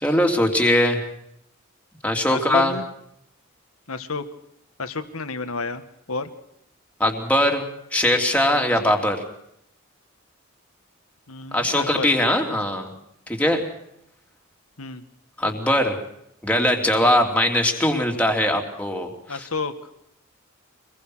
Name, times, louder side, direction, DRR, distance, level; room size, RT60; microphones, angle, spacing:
voice 1, 0.0-1.0 2.0-2.7 7.0-7.6 7.9-9.2 11.5-12.9 13.3-13.6 15.4-16.0 16.4-19.5, left 1 dB, 5° left, 2 dB, 3.1 m, -21 dB
voice 2, 2.3-2.9 3.9-4.2 4.8-5.8 6.1-6.3 8.5-8.9 11.3-12.1 14.8-15.0 17.0-17.2 19.3-19.7, left 3 dB, 85° left, 9 dB, 1.8 m, -30 dB
25.5 x 21.0 x 6.4 m, 0.78 s
head